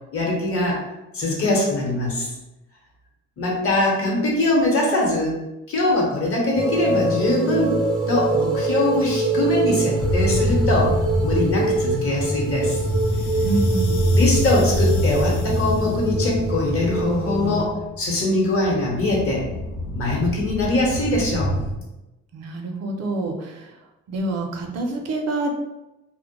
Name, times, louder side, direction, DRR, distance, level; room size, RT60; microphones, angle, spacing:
voice 1, 0.1-0.8 1.1-2.3 3.4-5.4 5.7-7.8 8.1-10.9 11.2-12.8 14.1-19.4 19.9-21.5, left 1 dB, 50° left, -2 dB, 0.9 m, -22 dB
sound 1, 6.6-17.6, right 2 dB, ahead, 0.5 m, -24 dB
sound 2, 10.0-21.7, equal, 85° left, 0.5 m, -25 dB
voice 2, 13.4-14.0 22.3-23.8 24.1-25.5, right 2 dB, 60° right, 3 dB, 0.5 m, -27 dB
2.1 x 2.1 x 2.9 m, 0.98 s
cardioid pair, 90°, 30 cm